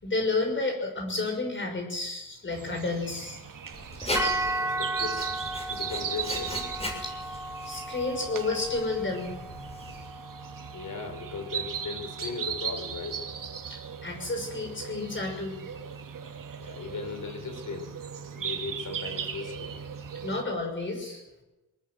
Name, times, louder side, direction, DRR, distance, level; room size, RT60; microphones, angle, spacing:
voice 1, 0.0-3.4 7.0-9.6 13.7-15.6 20.2-21.2, left 3 dB, 35° left, 2 dB, 6.2 m, -31 dB
sound 1, 2.5-20.4, right 7 dB, 65° right, 2.8 m, -38 dB
Writing, 3.7-10.1, left 1 dB, 15° left, 7.0 m, -38 dB
sound 2, 4.1-12.4, right 1 dB, 5° right, 2.3 m, -36 dB
voice 2, 4.2-5.3 5.6-6.6 10.7-13.3 16.6-17.9 18.4-19.7, left 5 dB, 60° left, 6 dB, 5.4 m, -38 dB
24.0 x 19.0 x 7.8 m, 0.97 s
wide cardioid pair, 175°, 35 cm